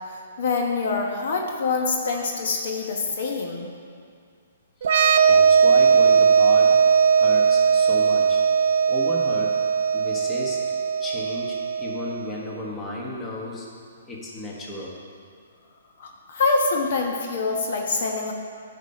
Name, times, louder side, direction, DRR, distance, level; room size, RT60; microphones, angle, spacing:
voice 1, 0.1-3.7 16.0-18.3, left 3 dB, 60° left, 1 dB, 1.1 m, -25 dB
voice 2, 4.8-6.8 7.1-8.4 8.9-9.6 9.9-10.6 11.0-13.7 14.1-14.9, left 1 dB, 15° left, -3 dB, 1.4 m, -34 dB
sound 1, 4.8-12.3, right 6 dB, 60° right, 0.5 m, -19 dB
11.0 x 5.5 x 4.4 m, 2.3 s
hypercardioid pair, 150°, 0 cm